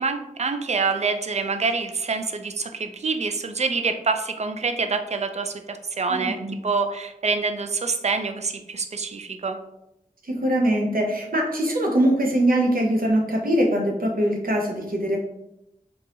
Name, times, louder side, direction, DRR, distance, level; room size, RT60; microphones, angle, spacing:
voice 1, 0.0-6.4 6.6-9.6, right 4 dB, 50° right, 7 dB, 0.4 m, -26 dB
voice 2, 6.1-6.5 10.3-15.2, right 1 dB, 80° right, 0 dB, 0.7 m, -22 dB
3.8 x 2.8 x 2.5 m, 0.87 s
wide cardioid pair, 60°, 15 cm